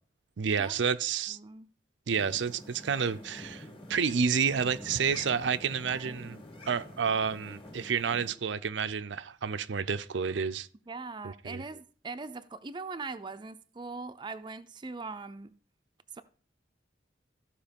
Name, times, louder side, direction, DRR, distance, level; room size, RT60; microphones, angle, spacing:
voice 1, 0.4-1.4 2.1-6.4 6.7-10.7 11.2-11.6, right 6 dB, 80° right, 0.5 m, -30 dB
voice 2, 1.3-1.7 5.9-6.4 10.9-15.5 16.1-16.2, right 3 dB, 25° right, 0.5 m, -41 dB
sound 1, 2.1-8.3, equal, 30° left, 1.9 m, -47 dB
14.5 x 4.8 x 5.2 m
head